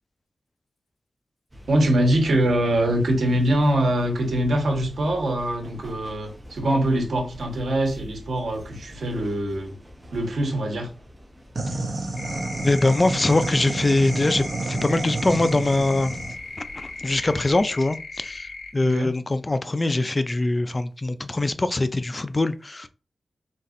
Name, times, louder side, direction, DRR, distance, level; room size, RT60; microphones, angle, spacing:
sound 1, 1.5-17.7, equal, 20° right, 1.0 m, -46 dB
voice 1, 1.7-9.7 10.1-10.9 18.8-19.1, right 1 dB, 85° right, 1.2 m, -23 dB
sound 2, 11.6-16.4, right 2 dB, 55° right, 0.8 m, -29 dB
sound 3, 12.1-18.7, left 4 dB, 75° left, 0.9 m, -38 dB
voice 2, 12.6-22.9, left 2 dB, 30° left, 0.4 m, -23 dB
4.1 x 4.0 x 2.6 m
wide cardioid pair, 85°, 0 cm